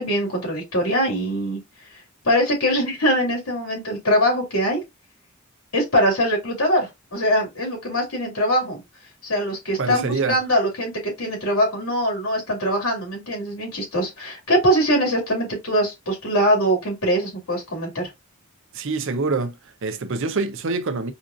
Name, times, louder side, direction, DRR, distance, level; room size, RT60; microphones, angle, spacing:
voice 1, 0.0-1.6 2.2-4.8 5.7-8.8 9.2-10.9 11.2-18.1, equal, 80° left, 2.5 m, -22 dB
voice 2, 9.8-10.4 18.7-21.1, right 4 dB, 60° right, 0.6 m, -25 dB
5.1 x 2.4 x 2.5 m
head